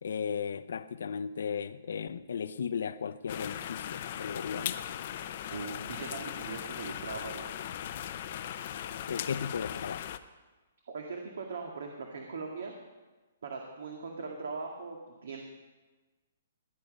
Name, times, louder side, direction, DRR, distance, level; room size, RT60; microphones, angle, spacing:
voice 1, 0.0-4.8 9.1-10.1, left 6 dB, 65° left, 0.7 m, -35 dB
sound 1, 3.3-10.2, left 10 dB, 35° left, 0.6 m, -38 dB
voice 2, 5.5-7.5 10.9-12.7 13.4-15.4, right 4 dB, 65° right, 2.0 m, -40 dB
19.0 x 11.0 x 5.4 m
hypercardioid pair, 175°, 0 cm